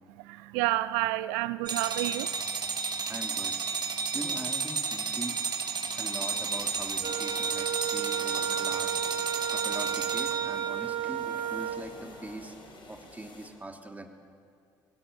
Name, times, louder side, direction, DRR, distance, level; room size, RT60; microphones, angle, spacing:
voice 1, 0.1-3.1 3.9-4.1 5.8-6.0, right 17 dB, 75° right, 0.5 m, -32 dB
sound 1, 1.7-10.7, right 5 dB, 40° right, 2.7 m, -32 dB
voice 2, 3.1-3.6 4.1-5.4 5.9-12.5 12.9-14.1, right 2 dB, 15° right, 3.1 m, -42 dB
sound 2, 6.3-13.5, left 2 dB, 45° left, 5.9 m, -49 dB
Wind instrument woodwind instrument, 7.0-11.9, right 11 dB, 55° right, 2.0 m, -33 dB
22.0 x 18.0 x 8.6 m
hypercardioid pair, 50°, 11 cm